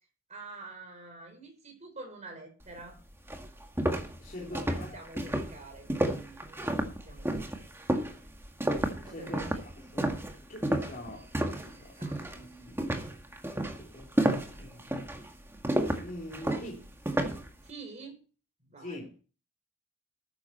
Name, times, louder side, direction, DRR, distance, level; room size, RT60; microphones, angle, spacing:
voice 1, 0.3-3.0 4.4-7.4 9.0-9.4 11.1-11.2 11.7-12.2 17.6-18.2 18.7-19.0, right 3 dB, 35° right, 5.1 m, -48 dB
sound 1, 2.8-2.9 3.3-11.7 12.0-12.4 12.8-17.5, right 1 dB, 10° right, 1.9 m, -31 dB
voice 2, 4.2-5.2 9.0-10.2 10.5-11.3 11.6-12.0 12.3-12.9 13.8-14.9 16.0-16.9 18.8-19.2, left 1 dB, 40° left, 3.4 m, -44 dB
13.5 x 10.0 x 4.4 m
head